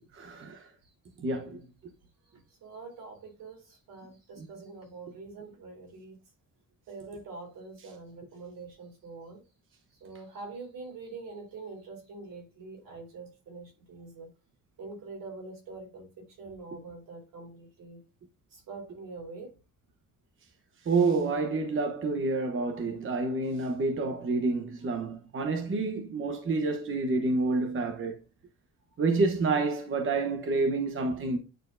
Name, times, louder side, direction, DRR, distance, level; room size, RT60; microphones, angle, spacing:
voice 1, 0.2-0.7 1.2-1.6 4.4-4.5 20.9-28.2 29.0-31.4, right 3 dB, 40° right, 1.0 m, -28 dB
voice 2, 2.6-6.2 6.9-9.4 10.0-14.3 14.8-16.1 16.4-18.0 18.5-19.5, right 3 dB, 80° right, 3.5 m, -44 dB
9.1 x 4.4 x 2.5 m
cardioid pair, 140°, 33 cm